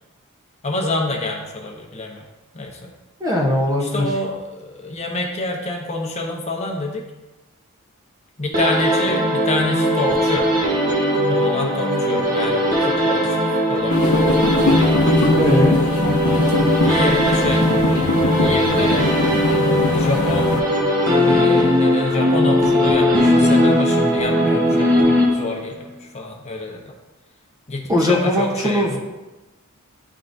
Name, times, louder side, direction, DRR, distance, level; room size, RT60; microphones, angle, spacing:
voice 1, 0.6-2.3 2.5-2.9 3.8-7.0 8.4-10.5 11.3-14.1 15.1-15.5 16.7-17.7 18.0-19.0 19.9-20.6 21.3-26.9 27.7-29.0, left 2 dB, 30° left, 0 dB, 0.8 m, -27 dB
voice 2, 3.2-4.1 15.3-15.8 27.9-29.0, left 1 dB, 15° right, -1 dB, 0.8 m, -19 dB
sound 1, 8.5-25.7, equal, 40° right, 1.2 m, -19 dB
Fariseos far away, 13.9-20.6, left 2 dB, 80° left, 0.6 m, -20 dB
11.0 x 3.7 x 2.6 m, 1.1 s
head